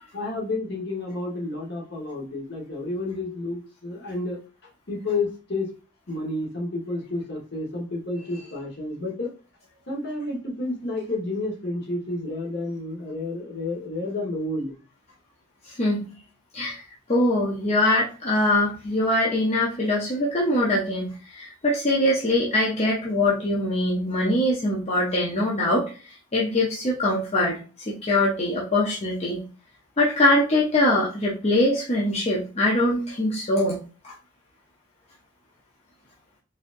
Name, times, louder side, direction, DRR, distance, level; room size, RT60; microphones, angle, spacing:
voice 1, 0.1-4.4 4.9-5.7 6.1-9.3 9.9-14.7, left 2 dB, 55° left, -2 dB, 1.2 m, -30 dB
voice 2, 17.1-25.8 26.3-27.6 27.9-29.4 30.0-33.8 34.0-34.1, left 1 dB, 35° left, -4 dB, 0.6 m, -22 dB
4.2 x 2.5 x 2.5 m, 0.35 s
head